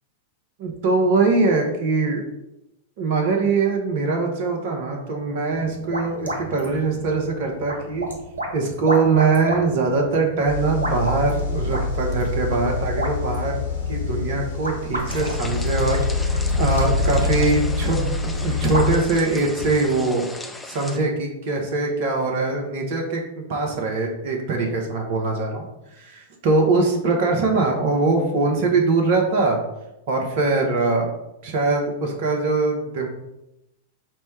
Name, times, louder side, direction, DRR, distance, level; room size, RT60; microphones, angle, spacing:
voice 1, 0.6-2.2 3.0-8.1 8.5-13.6 13.9-20.3 20.6-23.2 23.5-25.6 26.0-29.6 30.1-31.1 31.4-33.1, right 3 dB, 55° right, 2 dB, 0.8 m, -22 dB
sound 1, 5.5-20.1, right 1 dB, 80° right, 0.8 m, -33 dB
sound 2, 10.5-19.0, left 4 dB, 65° left, 1.3 m, -25 dB
soft rain and gutter, 15.1-21.0, left 2 dB, 10° left, 0.4 m, -37 dB
4.3 x 2.1 x 4.5 m, 0.88 s
figure-of-eight pair, 95°, 0 cm